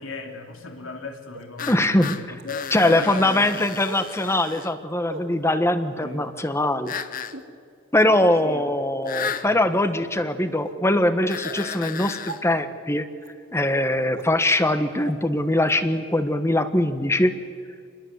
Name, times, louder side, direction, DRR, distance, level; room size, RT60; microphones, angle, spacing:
voice 1, 0.0-3.7 6.0-6.4 8.4-8.6 9.2-9.5, left 3 dB, 85° left, 4 dB, 3.1 m, -36 dB
sound 1, 1.3-1.4 2.3-2.4 3.8-4.1 5.1-5.2 6.0-6.3 7.2-7.5 8.1-8.3 9.0-9.1 9.7-9.9 10.7-10.8 11.4-11.6 12.3-12.4 13.2-13.3 14.1-14.2 15.1-15.2 15.7-15.8, right 2 dB, 70° right, 3.2 m, -38 dB
sound 2, 1.6-4.7 6.9-7.4 9.1-9.5 11.3-12.4, left 7 dB, 45° left, 1.0 m, -34 dB
voice 2, 1.7-2.2 2.7-6.9 7.9-13.0 13.5-17.3, left 1 dB, 15° left, 10 dB, 1.3 m, -22 dB
27.5 x 21.0 x 8.2 m, 2.1 s
head